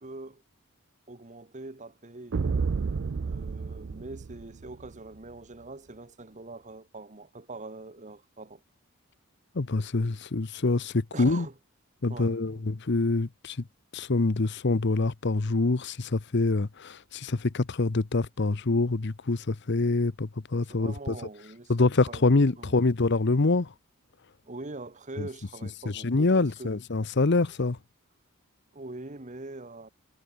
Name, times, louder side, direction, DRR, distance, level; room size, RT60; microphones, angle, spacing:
voice 1, 0.0-0.4 1.1-2.4 3.2-8.6 11.1-11.6 12.1-12.6 20.7-22.8 24.5-26.8 28.7-29.9, right 2 dB, 35° right, 1.3 m, -43 dB
sound 1, 2.3-4.9, right 5 dB, 60° right, 0.4 m, -31 dB
voice 2, 9.5-11.5 12.0-13.6 13.9-21.1 21.7-23.7 25.2-25.3 25.9-27.8, left 3 dB, 55° left, 0.8 m, -25 dB
head